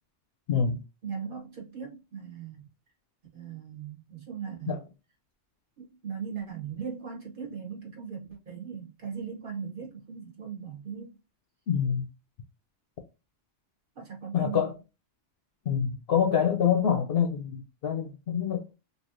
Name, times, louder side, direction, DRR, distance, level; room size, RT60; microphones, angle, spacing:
voice 1, 0.5-0.8 4.7-4.8 11.7-12.1 14.3-14.7 15.7-18.7, left 8 dB, 60° left, 0.7 m, -26 dB
voice 2, 1.0-2.6 3.3-4.8 5.8-11.2 14.0-14.7, right 7 dB, 45° right, 1.2 m, -39 dB
3.1 x 2.7 x 2.5 m
omnidirectional pair, 1.3 m